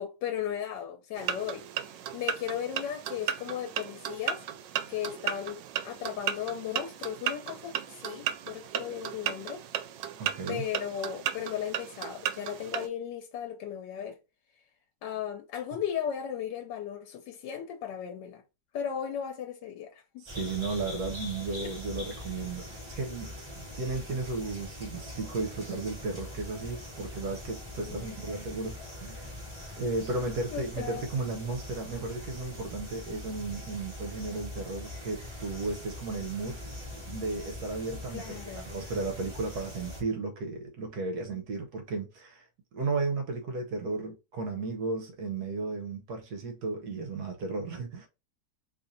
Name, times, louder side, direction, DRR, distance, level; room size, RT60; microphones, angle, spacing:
voice 1, 0.0-1.6 2.1-4.4 4.9-9.6 10.5-14.2 15.0-18.4 18.7-20.2 21.0-21.1 21.6-21.7 27.9-28.2 30.5-31.0 38.1-38.7, left 9 dB, 90° left, 1.3 m, -36 dB
sound 1, 1.2-12.9, right 10 dB, 90° right, 1.2 m, -35 dB
voice 2, 10.2-10.6 20.2-29.3 29.8-36.6 37.0-38.4 38.7-42.4 42.7-48.1, right 3 dB, 70° right, 1.3 m, -34 dB
sound 2, 20.3-40.0, left 1 dB, 20° right, 1.2 m, -42 dB
3.1 x 2.5 x 4.0 m
omnidirectional pair, 1.9 m